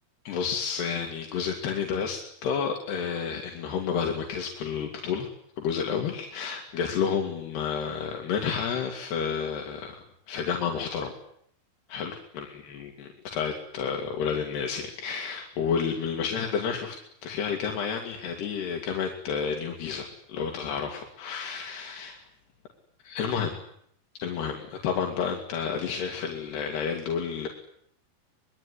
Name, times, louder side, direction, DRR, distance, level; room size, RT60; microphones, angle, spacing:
voice 1, 0.3-11.1 11.9-17.0 17.2-22.2 23.0-23.6 24.2-27.5, left 6 dB, 80° left, 2 dB, 4.5 m, -30 dB
24.5 x 22.0 x 9.8 m, 0.70 s
omnidirectional pair, 4.7 m